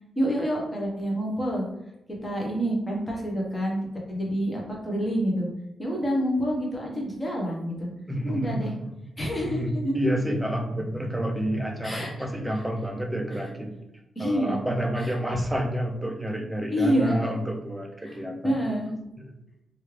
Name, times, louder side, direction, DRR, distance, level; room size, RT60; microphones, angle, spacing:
voice 1, 0.2-1.6 2.2-3.8 4.1-5.5 5.8-7.9 8.2-8.7 9.2-10.0 11.8-12.1 14.2-14.6 15.0-15.1 16.7-17.1 18.0-18.2 18.4-18.9, equal, 20° left, -2 dB, 0.9 m, -27 dB
voice 2, 8.1-8.9 9.4-13.8 14.2-18.6 19.2-19.3, equal, 5° right, 2 dB, 0.5 m, -29 dB
3.1 x 2.4 x 3.1 m, 0.89 s
wide cardioid pair, 155°, 0 cm